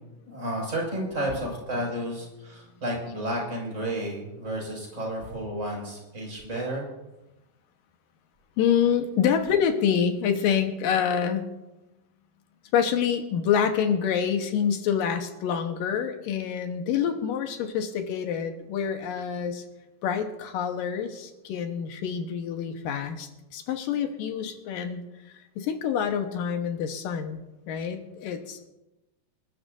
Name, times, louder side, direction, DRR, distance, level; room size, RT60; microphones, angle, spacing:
voice 1, 0.3-6.8, right 1 dB, 20° right, -2 dB, 6.2 m, -31 dB
voice 2, 8.6-11.4 12.7-19.6 20.0-25.0 25.6-28.7, left 8 dB, 90° left, 6 dB, 2.8 m, -27 dB
27.5 x 11.5 x 2.6 m, 1.0 s
omnidirectional pair, 3.9 m